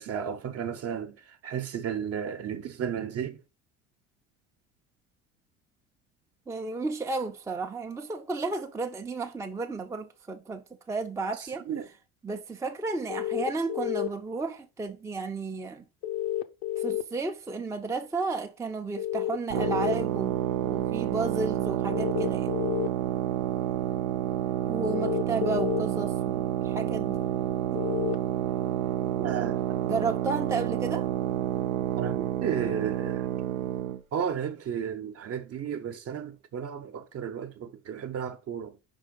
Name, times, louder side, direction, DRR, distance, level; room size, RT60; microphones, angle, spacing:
voice 1, 0.0-3.4 11.4-11.9 29.2-30.1 32.0-33.3 34.1-38.8, right 8 dB, 40° right, 0.9 m, -34 dB
voice 2, 6.5-11.7 12.2-15.8 16.8-22.6 24.7-27.2 27.7-27.8 29.9-31.1, right 3 dB, 10° right, 0.6 m, -33 dB
sound 1, 13.1-14.1 16.0-17.0 19.0-19.9 21.9-22.9 24.8-25.8 27.8-28.2, left 12 dB, 65° left, 0.8 m, -30 dB
sound 2, 19.5-34.0, right 12 dB, 75° right, 0.7 m, -29 dB
5.1 x 3.7 x 5.2 m
hypercardioid pair, 70°, 39 cm